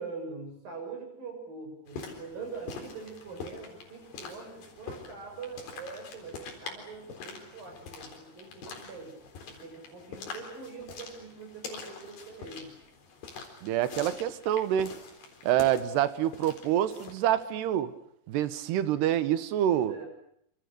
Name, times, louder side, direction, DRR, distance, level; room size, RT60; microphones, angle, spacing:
voice 1, 0.0-9.2 9.5-12.7 19.7-20.1, right 4 dB, 60° right, 3 dB, 9.1 m, -43 dB
sound 1, 1.9-17.2, left 5 dB, 90° left, 6.1 m, -45 dB
voice 2, 13.6-14.9 15.4-17.9 18.3-19.9, right 11 dB, 90° right, 12 dB, 3.4 m, -27 dB
27.5 x 27.0 x 6.8 m, 0.73 s
omnidirectional pair, 4.6 m